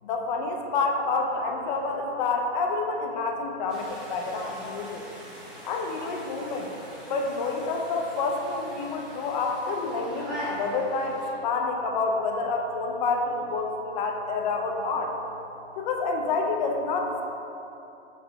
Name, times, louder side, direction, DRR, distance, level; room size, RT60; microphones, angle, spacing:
voice 1, 0.0-5.1 5.6-6.7 7.1-15.1 15.8-17.2, left 3 dB, 40° left, 2 dB, 0.5 m, -28 dB
sound 1, 3.7-11.3, equal, ahead, 0.9 m, -42 dB
4.1 x 3.1 x 3.3 m, 2.9 s
hypercardioid pair, 140°, 34 cm